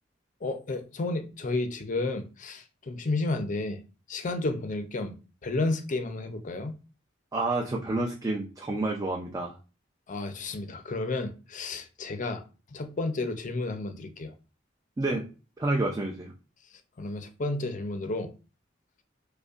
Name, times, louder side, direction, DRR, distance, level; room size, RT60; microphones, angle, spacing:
voice 1, 0.4-3.8 4.1-5.2 5.4-6.8 10.1-12.4 12.7-14.3 17.0-18.3, left 2 dB, 40° left, 0.5 m, -31 dB
voice 2, 7.3-9.5 15.0-15.3 15.6-16.3, right 2 dB, 20° right, 0.4 m, -29 dB
5.1 x 2.2 x 2.4 m
head